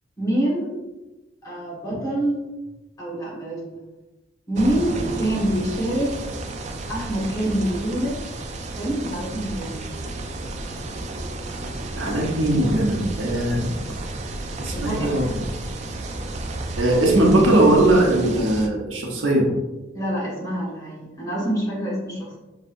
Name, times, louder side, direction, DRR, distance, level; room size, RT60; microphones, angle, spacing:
voice 1, 0.2-0.7 1.4-2.4 3.0-3.8 4.5-6.2 6.9-8.1 8.8-9.9 14.7-15.3 19.9-22.4, right 1 dB, 20° left, -6 dB, 1.5 m, -26 dB
sound 1, 4.5-18.7, right 2 dB, 35° right, 0.4 m, -32 dB
voice 2, 11.9-13.7 14.6-15.3 16.8-19.5, right 1 dB, 80° right, -1 dB, 1.0 m, -19 dB
5.5 x 3.2 x 2.6 m, 1.1 s
head